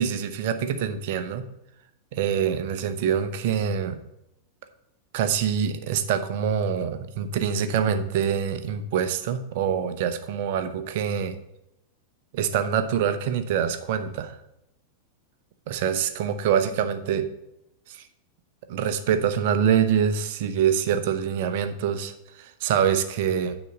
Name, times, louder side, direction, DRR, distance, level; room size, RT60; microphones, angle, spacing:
voice 1, 0.0-1.5 2.1-4.0 5.1-11.4 12.3-14.4 15.7-17.3 17.9-18.0 18.7-23.5, right 8 dB, 50° right, 9 dB, 0.8 m, -25 dB
9.5 x 4.1 x 6.5 m, 0.85 s
figure-of-eight pair, 90°, 0 cm